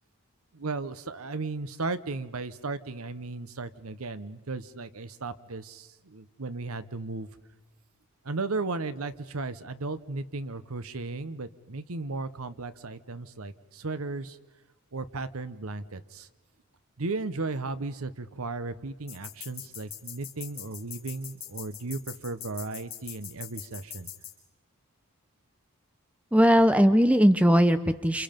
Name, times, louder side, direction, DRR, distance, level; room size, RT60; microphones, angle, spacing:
voice 1, 0.5-7.3 8.2-14.4 14.9-16.3 17.0-24.1, right 3 dB, 75° right, 13 dB, 0.9 m, -35 dB
sound 1, 19.1-24.3, left 9 dB, 25° left, 4.7 m, -41 dB
voice 2, 26.3-28.2, equal, 5° right, 10 dB, 0.7 m, -19 dB
28.5 x 28.0 x 5.2 m, 1.2 s
head